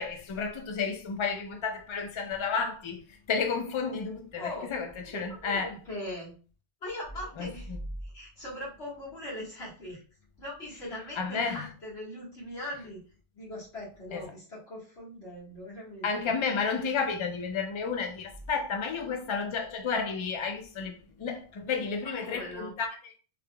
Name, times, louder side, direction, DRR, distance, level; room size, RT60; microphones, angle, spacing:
voice 1, 0.0-3.0 3.3-5.7 7.4-7.8 11.2-11.7 14.1-14.3 16.0-23.1, left 5 dB, 40° left, 0.4 m, -32 dB
voice 2, 4.4-4.7 5.1-6.3 6.8-7.7 8.0-10.0 10.4-13.0 13.3-16.3 22.0-22.7, left 1 dB, 80° left, 1.9 m, -40 dB
3.4 x 3.4 x 2.2 m
omnidirectional pair, 1.1 m